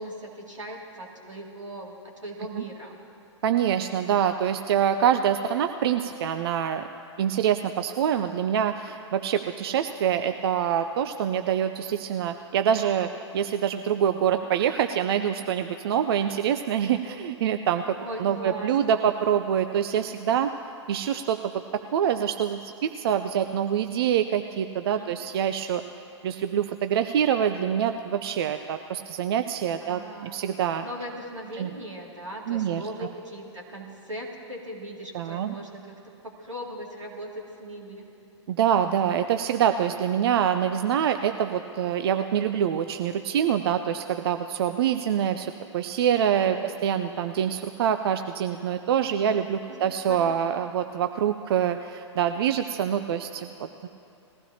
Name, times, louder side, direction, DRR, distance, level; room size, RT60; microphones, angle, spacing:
voice 1, 0.0-3.0 18.0-19.0 24.9-25.1 29.8-30.4 30.8-35.9 36.2-38.1 46.3-46.8 49.7-50.4, right 1 dB, 85° right, -2 dB, 2.4 m, -39 dB
voice 2, 3.4-6.9 7.2-13.1 13.3-20.5 20.9-21.5 21.9-25.8 26.2-30.8 31.6-31.7 32.5-33.1 35.1-35.6 38.5-53.9, right 9 dB, 55° right, 8 dB, 0.5 m, -25 dB
20.0 x 15.5 x 2.8 m, 2.8 s
figure-of-eight pair, 110°, 16 cm